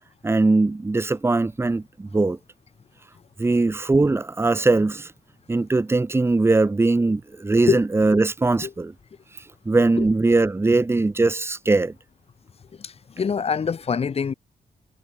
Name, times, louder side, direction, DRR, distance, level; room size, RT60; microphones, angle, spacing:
voice 1, 0.2-2.4 3.4-5.1 5.5-8.9 9.6-11.9, right 3 dB, 15° right, 1.5 m, -20 dB
voice 2, 12.8-14.3, left 6 dB, 45° left, 2.6 m, -24 dB
wide cardioid pair, 145°, 15 cm